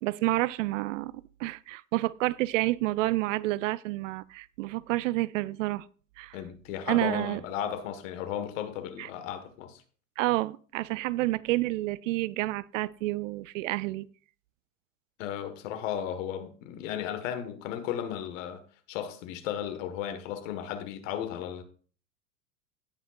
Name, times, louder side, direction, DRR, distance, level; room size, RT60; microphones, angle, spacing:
voice 1, 0.0-5.8 6.2-6.4 6.9-7.4 9.0-9.1 10.2-14.1, right 18 dB, 65° right, 0.5 m, -29 dB
voice 2, 6.3-9.8 15.2-18.6 18.9-21.6, left 9 dB, 65° left, 1.6 m, -35 dB
17.5 x 5.9 x 2.5 m
hypercardioid pair, 95°, 42 cm